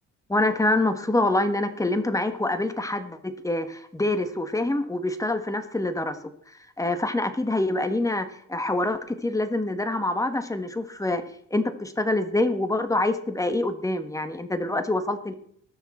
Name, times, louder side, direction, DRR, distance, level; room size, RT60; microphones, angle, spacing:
voice 1, 0.3-6.2 6.8-11.2 11.5-15.4, left 2 dB, 10° left, 8 dB, 1.5 m, -26 dB
20.0 x 7.0 x 4.3 m, 0.66 s
cardioid pair, 90°, 30 cm